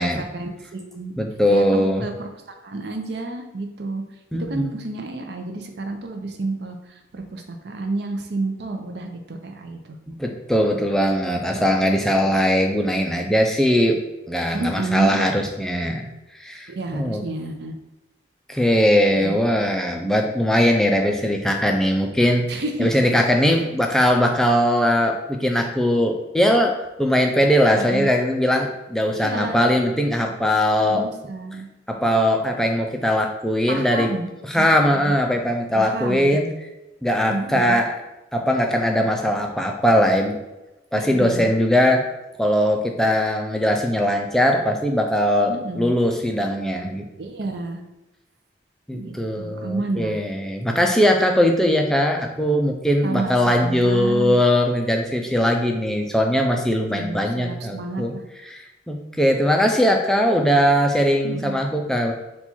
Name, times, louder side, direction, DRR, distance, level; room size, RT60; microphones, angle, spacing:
voice 1, 0.0-1.1 1.5-2.3 2.6-4.0 4.3-10.0 11.5-12.4 14.5-15.2 16.7-17.7 19.1-20.1 22.5-22.9 23.4-23.6 27.7-28.1 29.1-29.7 30.8-31.7 33.7-34.3 34.6-35.1 35.7-36.4 37.3-37.8 40.9-41.5 45.5-46.0 47.2-47.8 48.9-50.2 53.0-54.4 57.0-58.2 61.2-61.6, right 2 dB, 60° right, 4 dB, 0.5 m, -30 dB
voice 2, 1.2-2.0 4.3-4.7 10.2-14.0 14.3-16.1 16.4-17.2 18.5-31.1 31.9-34.1 34.4-36.5 37.0-37.9 38.3-40.4 40.9-42.0 42.4-47.1 48.9-58.1 58.5-62.1, equal, 5° left, 2 dB, 0.3 m, -20 dB
4.2 x 2.3 x 4.3 m, 1.0 s
head